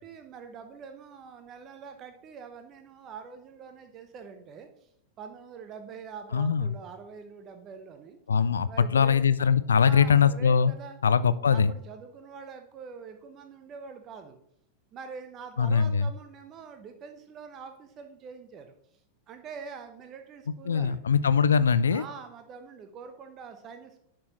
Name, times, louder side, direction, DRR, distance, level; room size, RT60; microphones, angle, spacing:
voice 1, 0.0-4.9 5.2-8.2 8.7-9.2 9.8-11.0 11.5-14.4 14.9-18.8 19.3-21.0 21.9-24.1, right 6 dB, 30° right, 7 dB, 0.8 m, -44 dB
voice 2, 6.3-6.7 8.3-10.7 11.0-11.7 15.6-16.1 20.7-22.0, left 6 dB, 70° left, 16 dB, 0.4 m, -22 dB
10.5 x 6.1 x 3.0 m, 0.69 s
figure-of-eight pair, 90°, 0 cm